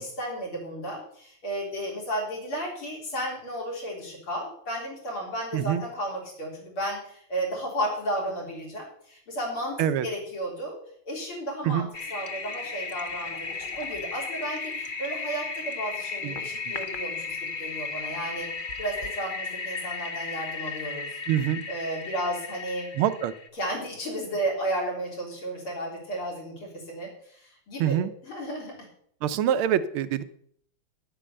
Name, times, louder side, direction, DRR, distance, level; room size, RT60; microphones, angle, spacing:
voice 1, 0.0-9.8 10.0-10.8 11.1-18.5 18.8-21.2 21.7-22.9 23.6-28.0 28.3-28.9, right 1 dB, 80° left, -2 dB, 4.6 m, -33 dB
voice 2, 5.5-5.8 9.8-10.1 11.6-11.9 16.2-16.8 21.3-21.6 22.9-23.3 27.8-28.1 29.2-30.2, right 10 dB, 85° right, 12 dB, 1.6 m, -25 dB
Toilet flush, 11.9-23.5, left 4 dB, 65° left, 0.5 m, -35 dB
9.9 x 8.8 x 6.7 m, 0.65 s
omnidirectional pair, 2.3 m